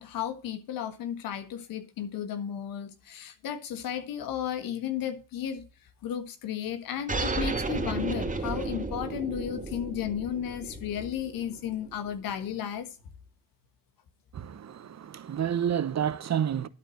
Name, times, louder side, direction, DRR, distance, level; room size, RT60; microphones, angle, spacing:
voice 1, 0.0-5.6 6.0-12.9, left 9 dB, 85° left, 1.5 m, -34 dB
sound 1, 7.1-12.1, right 3 dB, 25° right, 2.4 m, -33 dB
voice 2, 14.3-16.7, right 9 dB, 55° right, 0.9 m, -29 dB
11.5 x 4.5 x 7.6 m
cardioid pair, 65°, 33 cm